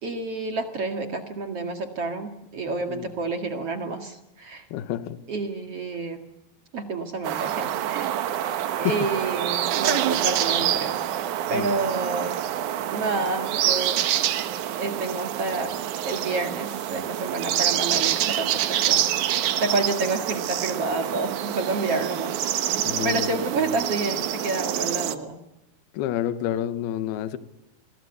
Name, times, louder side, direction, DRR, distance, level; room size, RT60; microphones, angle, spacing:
voice 1, 0.0-4.7 5.3-6.2 6.7-8.2 8.8-11.1 11.5-12.4 12.9-14.0 14.7-15.7 16.1-22.4 22.6-25.4, right 3 dB, 45° right, 2.3 m, -29 dB
voice 2, 4.7-5.2 8.7-8.9 11.5-11.7 22.8-23.7 25.9-27.4, left 12 dB, 70° left, 3.0 m, -29 dB
sound 1, 7.2-25.1, right 11 dB, 70° right, 1.9 m, -26 dB
28.5 x 23.0 x 8.2 m
omnidirectional pair, 5.1 m